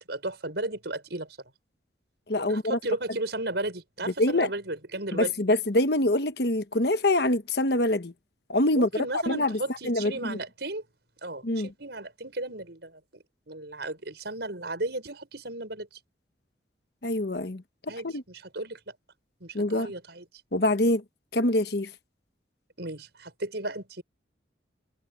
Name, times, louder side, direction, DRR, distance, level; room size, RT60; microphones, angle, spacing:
voice 1, 0.0-1.4 2.5-5.3 8.7-10.8 11.2-16.0 17.9-18.9 19.4-20.2 22.8-24.0, right 2 dB, 65° right, 5.9 m, -35 dB
voice 2, 2.3-2.8 4.2-4.5 5.1-8.1 8.5-8.9 9.3-9.6 9.9-10.4 11.4-11.7 17.0-18.2 19.5-19.9 20.5-21.0 21.3-21.9, left 1 dB, 55° left, 1.1 m, -25 dB
head